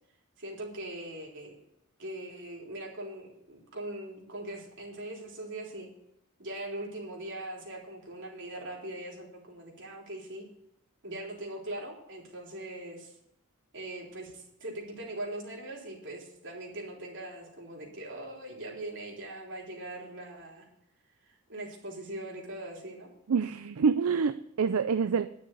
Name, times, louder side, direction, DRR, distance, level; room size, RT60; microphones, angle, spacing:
voice 1, 0.4-1.6 2.0-5.9 6.4-10.5 11.0-13.2 13.7-20.7 21.2-23.1, right 1 dB, 60° right, -2 dB, 3.7 m, -41 dB
voice 2, 23.3-25.3, right 5 dB, 80° right, 11 dB, 0.5 m, -26 dB
11.0 x 6.6 x 8.0 m, 0.77 s
head